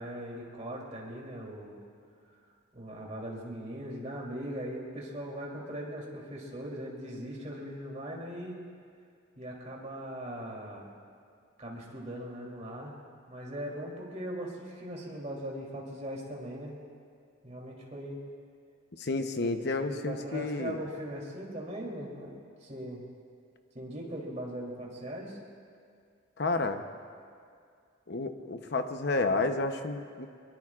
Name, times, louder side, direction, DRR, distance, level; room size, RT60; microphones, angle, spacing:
voice 1, 0.0-1.8 2.7-8.6 9.3-10.9 11.6-12.9 13.3-16.8 17.4-18.2 19.4-22.3 22.6-23.0 23.7-25.4, equal, 35° right, -3 dB, 3.2 m, -40 dB
voice 2, 19.0-20.8 26.4-26.8 28.1-30.3, left 3 dB, 55° left, 7 dB, 0.9 m, -31 dB
23.5 x 22.5 x 2.5 m, 2.3 s
head